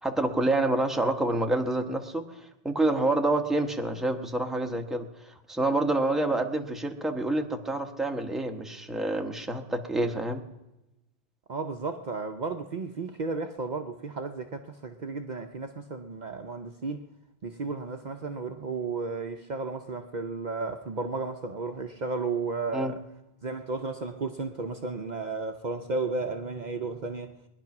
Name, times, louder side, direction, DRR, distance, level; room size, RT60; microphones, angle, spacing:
voice 1, 0.0-10.4 22.7-22.9, right 2 dB, ahead, 1.1 m, -28 dB
voice 2, 11.5-17.0 17.4-23.0 23.4-27.3, right 4 dB, 50° right, 0.8 m, -33 dB
21.0 x 10.5 x 5.9 m
omnidirectional pair, 1.1 m